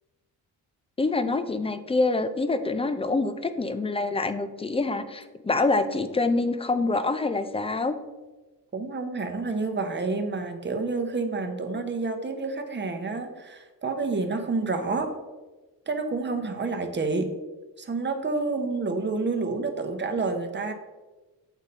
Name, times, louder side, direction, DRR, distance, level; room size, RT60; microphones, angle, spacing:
voice 1, 1.0-7.9, left 3 dB, 15° left, 10 dB, 0.4 m, -26 dB
voice 2, 8.7-15.2 15.9-17.3 17.8-20.7, right 3 dB, 30° right, 6 dB, 0.9 m, -29 dB
8.1 x 4.0 x 4.0 m, 1.2 s
cardioid pair, 90°, 40 cm